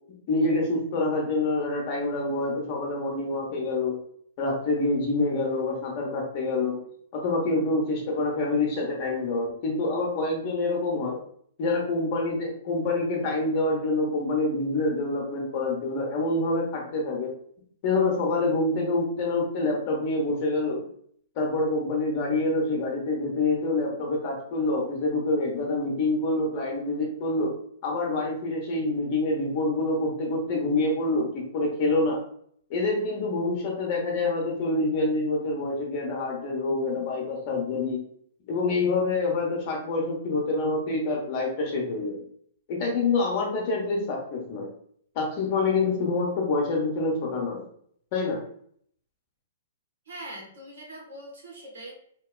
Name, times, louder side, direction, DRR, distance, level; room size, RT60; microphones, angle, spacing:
voice 1, 0.3-4.0 4.4-6.8 7.1-11.2 11.6-17.3 17.8-20.8 21.4-27.5 27.8-32.2 32.7-38.0 38.5-42.2 42.7-44.7 45.1-47.6 48.1-48.4, left 2 dB, 45° left, -1 dB, 0.9 m, -26 dB
voice 2, 50.1-51.9, right 1 dB, 75° right, -2 dB, 1.1 m, -42 dB
2.9 x 2.2 x 2.2 m, 0.64 s
hypercardioid pair, 120°, 0 cm